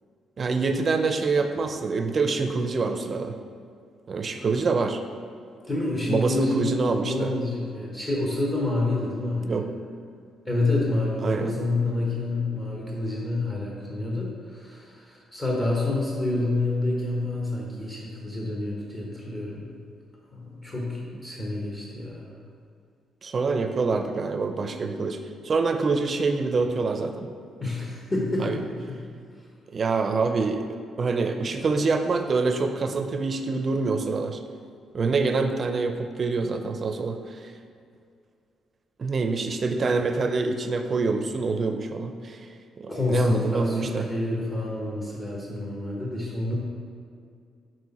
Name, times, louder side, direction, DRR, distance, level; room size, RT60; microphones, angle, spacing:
voice 1, 0.4-3.4 4.1-5.0 6.1-7.3 9.4-9.7 11.2-11.6 23.2-25.2 25.4-27.3 28.4-28.6 29.7-30.7 31.0-34.4 34.9-37.5 39.0-42.5 42.8-44.1, right 4 dB, 40° right, 6 dB, 0.5 m, -26 dB
voice 2, 5.7-9.6 10.5-19.7 20.3-22.3 27.6-29.0 42.9-46.5, left 2 dB, 30° left, -3 dB, 1.2 m, -28 dB
6.4 x 4.4 x 4.2 m, 2.3 s
cardioid pair, 90°, 0 cm